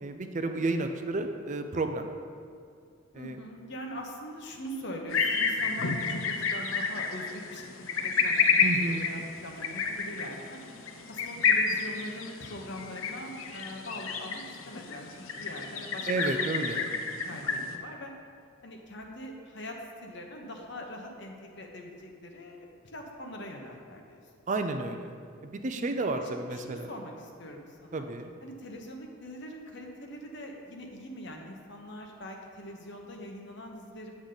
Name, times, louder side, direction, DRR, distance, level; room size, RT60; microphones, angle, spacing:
voice 1, 0.0-2.1 3.1-3.4 8.6-9.0 16.1-16.9 24.5-25.1 25.4-26.9 27.9-28.3, right 2 dB, 35° right, 6 dB, 0.4 m, -31 dB
voice 2, 3.1-7.6 7.9-10.6 11.1-16.5 17.2-18.1 18.6-24.2 26.1-26.2 26.5-28.1 28.4-34.2, equal, 55° left, 2 dB, 1.1 m, -42 dB
sound 1, 5.1-17.8, left 5 dB, 70° left, 0.7 m, -30 dB
8.5 x 8.0 x 3.9 m, 2.2 s
head